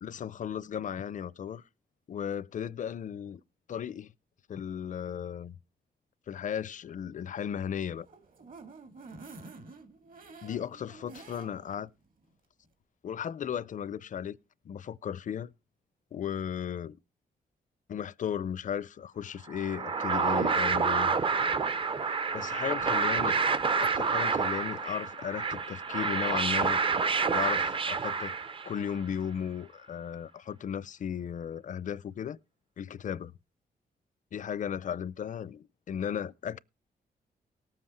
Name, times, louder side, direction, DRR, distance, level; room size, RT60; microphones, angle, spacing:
voice 1, 0.0-1.6 2.1-3.4 3.7-4.1 4.5-5.6 6.3-8.1 10.4-11.9 13.0-14.4 14.6-15.5 16.1-17.0 17.9-21.1 22.3-23.5 23.8-26.8 27.3-28.3 28.6-32.4 32.8-33.3 34.3-36.6, left 8 dB, 50° left, 0.5 m, -35 dB
sound 1, 7.8-11.8 12.2-12.3 12.6-12.7, right 3 dB, 60° right, 2.5 m, -49 dB
sound 2, 19.5-28.9, right 5 dB, 35° right, 0.6 m, -28 dB
18.0 x 7.7 x 4.3 m
wide cardioid pair, 130°, 16 cm